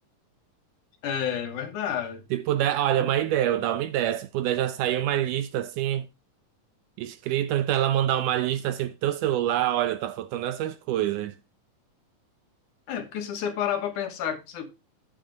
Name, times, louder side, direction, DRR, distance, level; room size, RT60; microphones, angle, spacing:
voice 1, 1.0-2.2 12.9-14.7, left 9 dB, 70° left, 2.5 m, -30 dB
voice 2, 2.3-6.1 7.0-11.4, right 11 dB, 75° right, 2.0 m, -26 dB
8.9 x 8.4 x 3.8 m
omnidirectional pair, 4.0 m